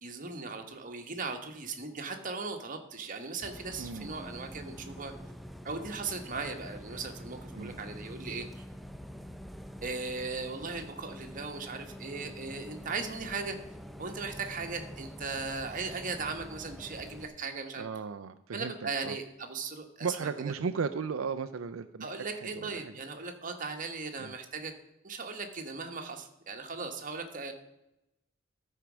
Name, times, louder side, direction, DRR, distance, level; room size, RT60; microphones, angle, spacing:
voice 1, 0.0-5.1 5.6-8.6 9.8-13.6 14.0-17.9 18.5-20.5 22.0-24.7 25.0-27.5, right 4 dB, 40° right, 4 dB, 1.3 m, -38 dB
Bus, 3.4-17.3, equal, ahead, 0.5 m, -46 dB
voice 2, 3.8-4.1 7.6-7.8 17.8-18.7 19.0-19.2 20.0-23.0 24.2-24.3, right 5 dB, 85° right, 10 dB, 0.5 m, -35 dB
13.5 x 4.6 x 6.1 m, 0.88 s
head